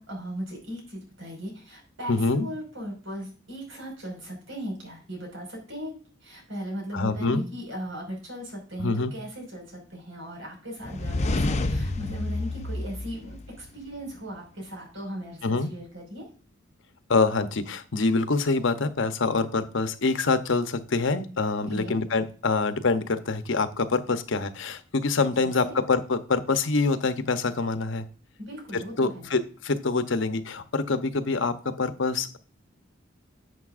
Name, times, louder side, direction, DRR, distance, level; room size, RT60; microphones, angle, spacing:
voice 1, 0.0-5.9 6.2-16.2 21.7-22.0 25.4-25.8 28.4-29.3, equal, 85° right, 0 dB, 5.3 m, -38 dB
voice 2, 2.1-2.5 6.9-7.4 8.8-9.1 15.4-15.7 17.1-28.1 28.7-32.4, left 3 dB, 70° left, 9 dB, 0.9 m, -25 dB
sound 1, 10.8-13.8, left 2 dB, 35° left, 0.6 m, -29 dB
11.0 x 7.8 x 2.5 m, 0.38 s
head